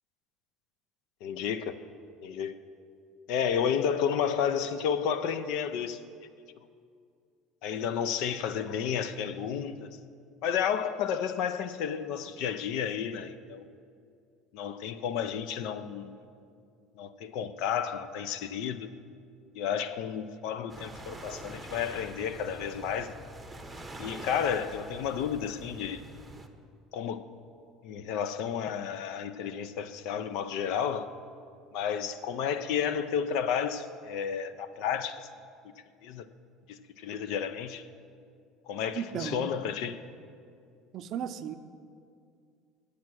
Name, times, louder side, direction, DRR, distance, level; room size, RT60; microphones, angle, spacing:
voice 1, 1.2-1.8 2.2-2.6 3.3-6.0 7.6-10.0 10.4-13.6 14.5-16.2 17.0-18.9 19.5-23.2 24.0-26.0 26.9-27.2 27.8-31.1 31.7-35.3 36.0-36.3 36.7-37.9 38.7-40.0, left 8 dB, 70° left, 13 dB, 0.5 m, -31 dB
sound 1, 20.7-26.5, right 1 dB, 10° right, 0.7 m, -45 dB
voice 2, 38.9-39.5 40.9-41.6, right 8 dB, 50° right, 10 dB, 0.5 m, -35 dB
8.3 x 7.5 x 6.1 m, 2.3 s
supercardioid pair, 105°, 0 cm